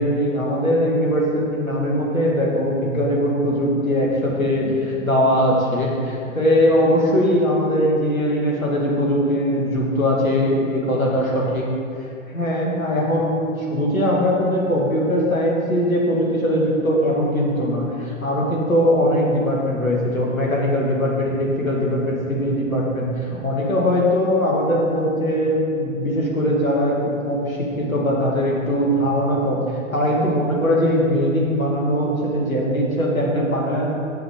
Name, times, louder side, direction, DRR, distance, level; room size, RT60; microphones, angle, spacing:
voice 1, 0.0-11.6 12.3-29.7 29.9-33.9, equal, 90° left, -3 dB, 1.8 m, -20 dB
7.7 x 7.4 x 5.0 m, 2.5 s
figure-of-eight pair, 105°, 40 cm